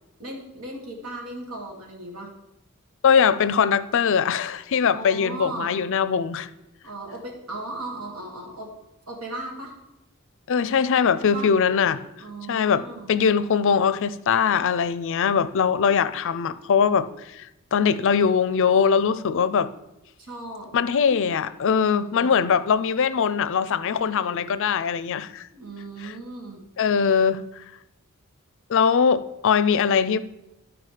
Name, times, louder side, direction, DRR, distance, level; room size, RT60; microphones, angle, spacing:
voice 1, 0.2-2.3 4.9-5.8 6.8-8.7 9.1-9.8 11.2-11.5 12.2-13.1 20.2-20.8 21.7-22.3 24.0-24.5 25.5-26.6, right 2 dB, 85° right, 0 dB, 2.2 m, -37 dB
voice 2, 3.0-6.5 10.5-12.0 12.5-12.8 13.1-19.7 20.7-25.5 26.0-26.1 26.8-27.4 28.7-30.2, left 6 dB, 60° left, 14 dB, 0.4 m, -21 dB
11.5 x 4.8 x 4.9 m, 0.90 s
head